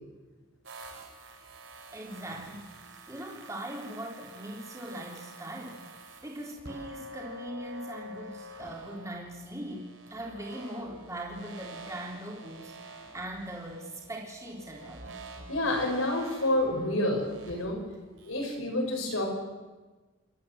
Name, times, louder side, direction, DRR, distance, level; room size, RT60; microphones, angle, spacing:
sound 1, 0.6-18.5, right 2 dB, 70° right, 4.2 m, -47 dB
voice 1, 1.9-2.7 3.1-5.8 6.2-15.0, right 1 dB, 15° right, -2 dB, 3.5 m, -40 dB
voice 2, 15.5-17.8 18.3-19.3, left 1 dB, 90° left, 1 dB, 6.2 m, -29 dB
27.5 x 13.0 x 7.8 m, 1.3 s
head